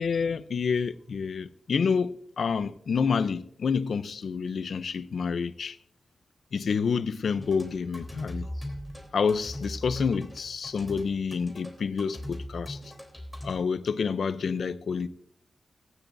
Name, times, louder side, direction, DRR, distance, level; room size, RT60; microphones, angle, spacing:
voice 1, 0.0-5.8 6.5-8.5 9.1-12.8 13.4-15.1, left 5 dB, 70° left, 0.6 m, -28 dB
sound 1, 7.3-13.5, left 1 dB, 5° left, 3.5 m, -39 dB
17.5 x 15.5 x 2.6 m
wide cardioid pair, 125°, 0 cm